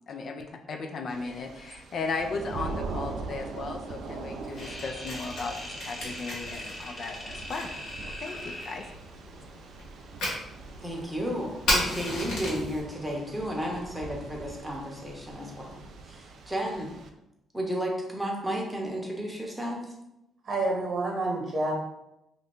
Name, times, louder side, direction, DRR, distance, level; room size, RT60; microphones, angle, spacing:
voice 1, 0.1-7.7 8.0-8.9, left 4 dB, 55° left, 5 dB, 0.3 m, -36 dB
Thunder / Rain, 1.1-17.1, right 4 dB, 70° right, 0.4 m, -42 dB
Fire, 4.4-12.8, left 1 dB, 80° left, 1.2 m, -35 dB
sound 1, 4.6-9.0, left 1 dB, 25° left, 0.8 m, -41 dB
voice 2, 10.8-16.9 17.5-19.9, equal, 5° right, -1 dB, 0.8 m, -33 dB
voice 3, 20.4-21.7, right 2 dB, 50° right, -1 dB, 1.0 m, -28 dB
2.7 x 2.5 x 3.3 m, 0.88 s
cardioid pair, 90°, 0 cm